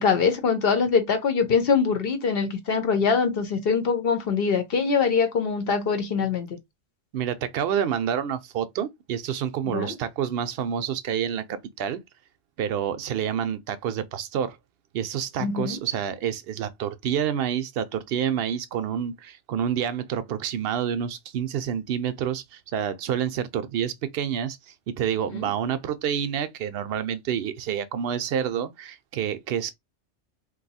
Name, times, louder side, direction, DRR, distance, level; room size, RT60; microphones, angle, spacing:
voice 1, 0.0-6.6 9.7-9.9 15.4-15.8 25.3-25.4, left 5 dB, 60° left, 0.8 m, -23 dB
voice 2, 7.1-12.0 12.6-14.6 14.9-29.7, right 9 dB, 65° right, 0.7 m, -28 dB
2.6 x 2.3 x 4.0 m
omnidirectional pair, 1.2 m